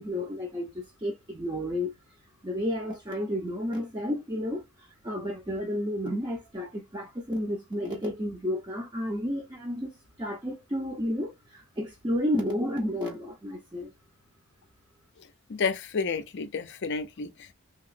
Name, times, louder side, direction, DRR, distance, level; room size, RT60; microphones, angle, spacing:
voice 1, 0.0-1.9 2.4-13.9, equal, 20° right, 0.6 m, -32 dB
voice 2, 15.5-17.5, left 5 dB, 55° left, 0.5 m, -31 dB
2.9 x 2.9 x 2.4 m
head